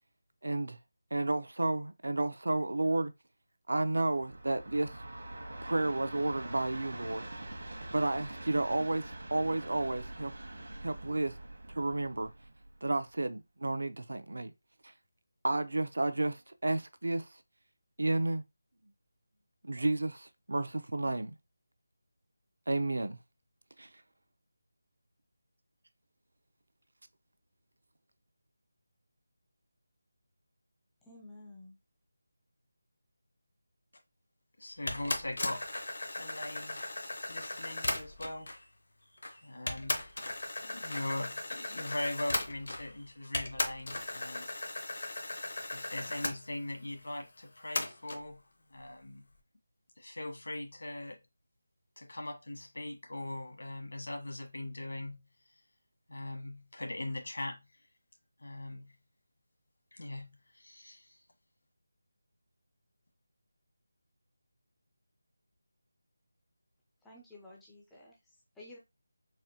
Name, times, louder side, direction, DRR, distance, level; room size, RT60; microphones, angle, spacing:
voice 1, 0.4-0.8 1.1-3.1 3.7-4.9 5.6-7.2 7.9-10.3 10.8-11.3 11.7-12.3 12.8-14.5 14.8-14.9 15.4-17.3 18.0-18.4 19.6-21.3 22.7-23.2 23.8-23.9, right 2 dB, 85° right, 0.5 m, -31 dB
Train, 4.0-13.2, right 1 dB, 70° right, 1.0 m, -44 dB
voice 2, 31.0-31.8 67.0-68.8, left 2 dB, 5° left, 0.3 m, -52 dB
sound 1, 34.6-35.2 35.7-36.2 36.6-37.0 37.4-38.7 39.0-39.5 40.0-40.4 40.8-41.3 41.7-42.3 42.7-43.2, left 1 dB, 85° left, 0.8 m, -51 dB
voice 3, 34.6-35.7 36.2-36.9 37.3-38.6 39.4-40.1 40.6-44.5 45.7-48.4 48.7-49.3 50.0-51.2 52.0-55.3 56.1-57.7 58.4-59.0 59.9-61.2, left 1 dB, 65° left, 1.2 m, -40 dB
sound 2, 34.9-38.4 39.2-39.3 39.7-43.0 43.3-46.4 47.8-48.2, left 2 dB, 50° left, 0.6 m, -37 dB
4.2 x 2.0 x 2.7 m
figure-of-eight pair, 180°, 0 cm